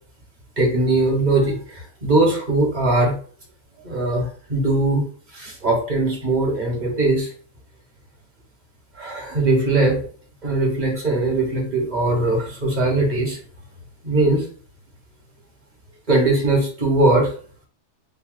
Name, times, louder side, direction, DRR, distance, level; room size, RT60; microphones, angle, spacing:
voice 1, 0.6-3.1 3.8-5.1 5.3-7.3 8.9-10.0 10.4-13.4 14.0-14.4 16.1-17.3, right 2 dB, 35° right, -1 dB, 1.4 m, -20 dB
3.7 x 2.2 x 4.0 m, 0.43 s
omnidirectional pair, 1.5 m